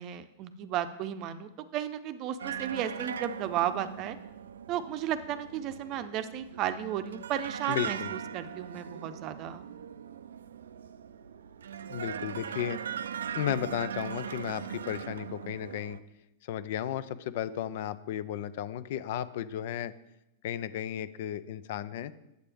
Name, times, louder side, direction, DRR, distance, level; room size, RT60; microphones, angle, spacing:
voice 1, 0.0-4.2 4.7-9.6, right 10 dB, 45° right, 11 dB, 0.6 m, -34 dB
sound 1, 2.4-16.0, right 8 dB, 85° right, 0.3 m, -40 dB
voice 2, 7.7-8.1 11.9-12.8 13.3-16.0 16.5-19.9 20.4-22.1, left 11 dB, 60° left, 15 dB, 0.4 m, -34 dB
8.2 x 7.9 x 3.4 m, 0.90 s
hypercardioid pair, 110°, 0 cm